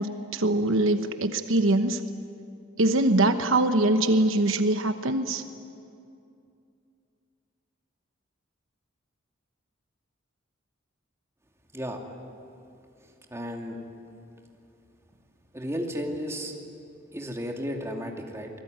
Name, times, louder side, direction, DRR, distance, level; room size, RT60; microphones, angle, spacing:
voice 1, 0.0-2.0 2.8-5.4, right 2 dB, 75° right, 8 dB, 1.1 m, -23 dB
voice 2, 13.3-13.8 15.5-16.6 17.1-18.5, equal, 15° right, 1 dB, 2.6 m, -33 dB
27.0 x 20.0 x 9.5 m, 2.5 s
head